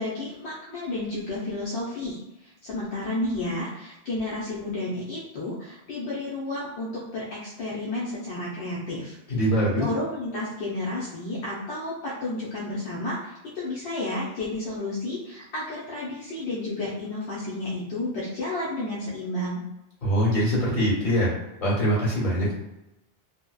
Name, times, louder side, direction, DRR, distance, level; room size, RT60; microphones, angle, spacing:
voice 1, 0.0-9.2 9.8-19.6, left 2 dB, 80° left, -7 dB, 0.9 m, -31 dB
voice 2, 9.3-9.8 20.0-21.3 21.6-22.5, equal, 45° left, -7 dB, 1.4 m, -23 dB
2.7 x 2.1 x 2.2 m, 0.91 s
omnidirectional pair, 1.1 m